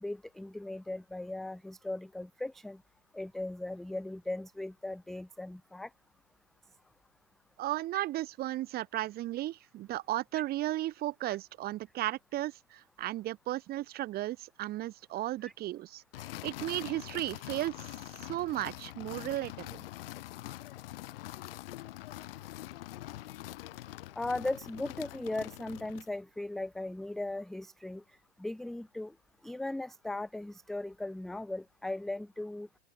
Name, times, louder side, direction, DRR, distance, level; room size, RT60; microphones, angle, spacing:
voice 1, 0.0-2.8 3.1-5.9 15.4-15.5 24.2-28.0 28.4-29.1 29.4-32.7, left 2 dB, ahead, 0.4 m, -38 dB
voice 2, 7.6-16.0 16.4-17.9 18.3-19.8, right 15 dB, 30° right, 2.3 m, -35 dB
sound 1, 16.1-26.2, left 16 dB, 60° left, 3.8 m, -44 dB
open air
hypercardioid pair, 140°, 31 cm